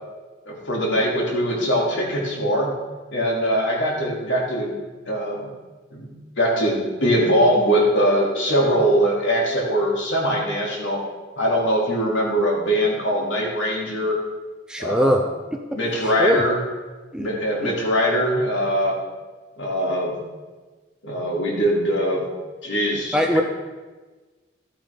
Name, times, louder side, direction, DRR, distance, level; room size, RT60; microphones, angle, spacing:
voice 1, 0.4-2.7 3.1-4.7 5.0-5.5 5.9-6.1 6.4-11.0 11.4-14.2 14.8-15.2 15.7-16.6 17.2-19.0 19.6-20.2 21.0-22.2 22.6-23.4, equal, 80° left, -3 dB, 2.7 m, -22 dB
voice 2, 14.7-15.2 15.5-15.6 16.2-16.4 17.1-17.3 17.6-17.7 23.1-23.4, equal, 5° right, 3 dB, 0.5 m, -20 dB
13.0 x 8.5 x 3.6 m, 1.3 s
head